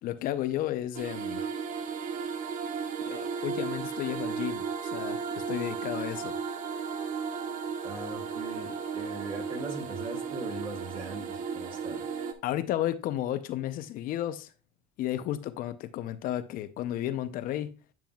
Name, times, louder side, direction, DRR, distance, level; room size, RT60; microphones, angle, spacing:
voice 1, 0.0-1.5 3.1-6.4 12.4-14.5 15.0-17.8, left 12 dB, 60° left, 0.6 m, -33 dB
sound 1, 0.9-12.3, right 6 dB, 55° right, 1.2 m, -35 dB
voice 2, 7.8-12.1, right 2 dB, 35° right, 3.7 m, -40 dB
9.2 x 7.3 x 2.3 m
supercardioid pair, 100°, 16 cm